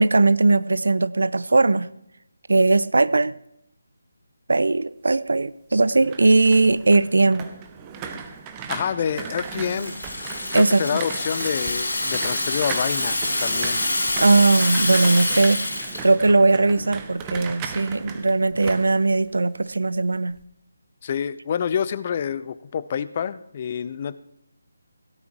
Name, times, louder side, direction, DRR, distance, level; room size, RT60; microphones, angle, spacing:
voice 1, 0.0-1.9 2.5-3.3 4.5-7.5 10.5-11.0 14.2-20.4, right 3 dB, 60° right, 0.5 m, -19 dB
sound 1, 5.7-19.7 20.1-20.4, right 6 dB, 15° right, 0.9 m, -37 dB
voice 2, 8.7-10.0 10.5-13.8 21.0-24.2, left 8 dB, 30° left, 0.5 m, -27 dB
Rattle (instrument), 9.2-16.1, left 2 dB, 70° left, 4.4 m, -26 dB
17.0 x 12.0 x 2.9 m
figure-of-eight pair, 150°, 0 cm